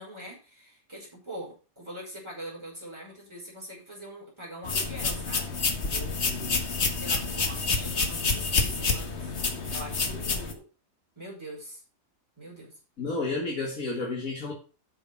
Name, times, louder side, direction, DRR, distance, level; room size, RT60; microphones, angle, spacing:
voice 1, 0.0-6.6 7.0-9.3 9.7-10.6 11.2-11.8 12.4-12.8, right 1 dB, 20° right, 5.5 m, -43 dB
sound 1, 4.6-10.5, left 4 dB, 50° left, 1.7 m, -28 dB
voice 2, 13.0-14.5, left 3 dB, 75° left, 2.4 m, -31 dB
8.7 x 6.7 x 5.4 m
omnidirectional pair, 1.5 m